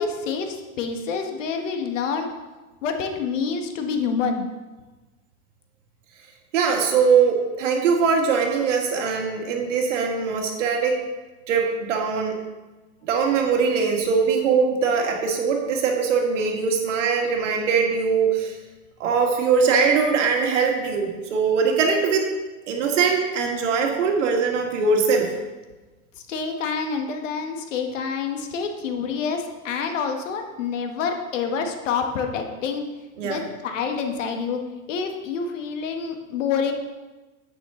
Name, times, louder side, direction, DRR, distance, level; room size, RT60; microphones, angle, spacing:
voice 1, 0.0-2.3 2.8-4.5 26.1-32.8 33.2-34.6 34.9-36.7, left 5 dB, 65° left, 4 dB, 1.5 m, -27 dB
voice 2, 6.5-11.0 11.5-12.4 13.1-18.6 19.0-22.3 22.7-25.3 33.2-33.4, right 5 dB, 60° right, 2 dB, 2.0 m, -21 dB
9.9 x 8.4 x 3.8 m, 1.2 s
supercardioid pair, 180°, 41 cm